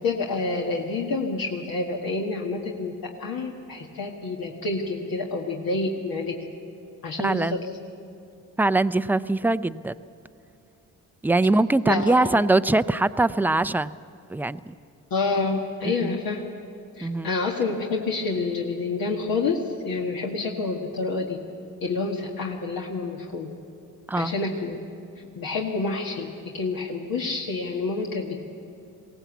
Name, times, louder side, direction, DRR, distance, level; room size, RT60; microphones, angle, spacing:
voice 1, 0.0-6.3 7.0-7.7 11.8-12.5 15.1-16.4 16.9-21.4 21.8-23.5 24.2-24.8 25.4-28.4, left 3 dB, 70° left, 0 dB, 1.8 m, -28 dB
voice 2, 7.2-7.6 8.6-9.9 11.2-13.9 14.3-14.7 15.8-16.1 17.0-17.3 24.1-24.3, right 2 dB, 5° right, 14 dB, 0.4 m, -22 dB
21.5 x 17.0 x 8.2 m, 2.8 s
cardioid pair, 90°, 36 cm